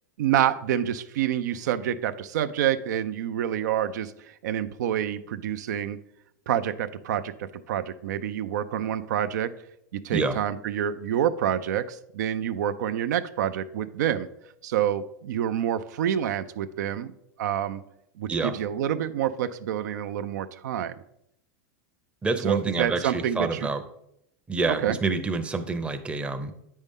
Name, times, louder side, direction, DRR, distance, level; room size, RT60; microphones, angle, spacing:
voice 1, 0.2-6.0 6.5-9.5 9.9-14.3 14.6-17.1 17.4-17.8 18.2-21.0 22.4-23.7 24.7-25.0, right 10 dB, 80° right, 11 dB, 0.4 m, -27 dB
voice 2, 22.2-23.8 24.5-26.5, right 3 dB, 10° right, 7 dB, 0.6 m, -27 dB
8.1 x 5.4 x 3.6 m, 0.78 s
supercardioid pair, 125°, 9 cm